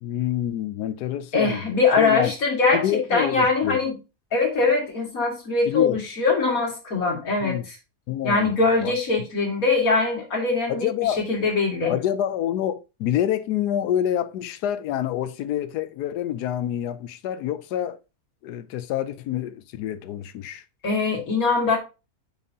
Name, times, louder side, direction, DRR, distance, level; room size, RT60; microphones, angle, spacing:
voice 1, 0.0-1.6 2.0-2.3 2.7-3.8 5.7-6.0 7.4-7.6 8.1-8.5 8.8-9.0 10.7-11.2 11.9-18.0 18.4-20.6, left 11 dB, 90° left, 1.2 m, -27 dB
voice 2, 1.3-4.0 4.3-7.8 8.2-11.9 20.8-21.8, left 4 dB, 60° left, 2.3 m, -22 dB
9.0 x 4.7 x 2.7 m
omnidirectional pair, 1.7 m